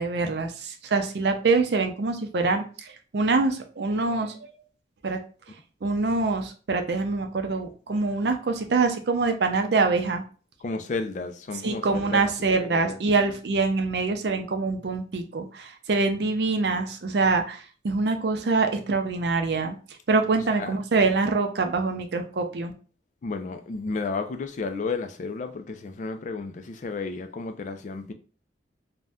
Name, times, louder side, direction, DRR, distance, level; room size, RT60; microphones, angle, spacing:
voice 1, 0.0-4.5 5.0-5.2 5.8-10.2 11.6-19.8 20.1-22.7, right 3 dB, 70° right, 0.5 m, -25 dB
voice 2, 10.6-12.3 12.6-13.0 20.6-20.7 23.2-28.1, left 3 dB, 45° left, 0.3 m, -32 dB
2.6 x 2.2 x 3.4 m
head